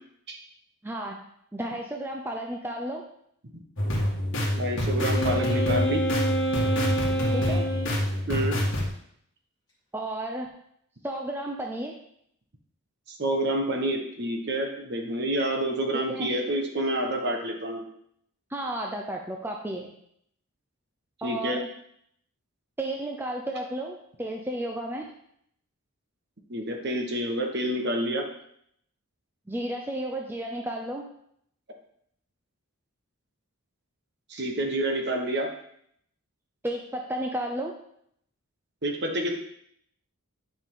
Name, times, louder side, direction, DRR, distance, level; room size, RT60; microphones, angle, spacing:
voice 1, 0.8-1.2 1.5-3.0 7.3-7.7 9.9-10.5 11.0-11.9 16.1-16.3 18.5-19.9 21.2-21.7 22.8-25.1 29.5-31.0 36.6-37.7, right 1 dB, 10° right, 1 dB, 0.6 m, -32 dB
sound 1, 3.8-8.9, equal, 55° left, 1.9 m, -27 dB
voice 2, 4.5-6.0 8.3-8.6 13.1-17.8 21.2-21.6 26.5-28.3 34.3-35.5 38.8-39.3, right 1 dB, 50° right, 3 dB, 1.3 m, -28 dB
Wind instrument woodwind instrument, 5.1-8.0, right 1 dB, 15° left, 2.6 m, -28 dB
10.0 x 5.3 x 3.8 m, 0.70 s
head